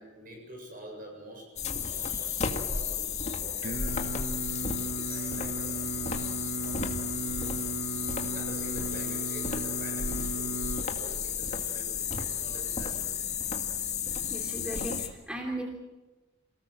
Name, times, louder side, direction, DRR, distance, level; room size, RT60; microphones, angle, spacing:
voice 1, 0.0-4.2 4.9-6.0 6.6-7.7 8.3-13.2, equal, 45° right, 1 dB, 7.6 m, -47 dB
sound 1, 1.6-15.1, left 6 dB, 35° left, 2.0 m, -33 dB
Singing, 3.6-10.8, right 3 dB, 60° right, 1.4 m, -37 dB
voice 2, 14.3-15.6, right 1 dB, 5° right, -1 dB, 3.0 m, -37 dB
28.0 x 18.5 x 7.4 m, 1.2 s
head